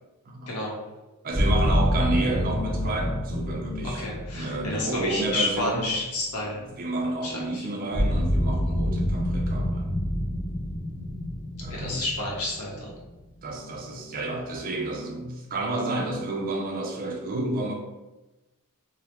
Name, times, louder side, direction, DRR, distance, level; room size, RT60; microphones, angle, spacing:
voice 1, 0.3-0.6 1.2-4.0 4.3-5.8 6.6-9.9 11.6-12.0 13.4-17.7, right 2 dB, 40° right, 1 dB, 0.4 m, -30 dB
sound 1, 1.3-6.3 7.9-13.6, equal, 50° left, 0.6 m, -27 dB
voice 2, 3.9-6.6 7.2-7.7 11.7-12.9, left 2 dB, 85° left, -4 dB, 0.8 m, -30 dB
2.2 x 2.1 x 2.9 m, 1.1 s
head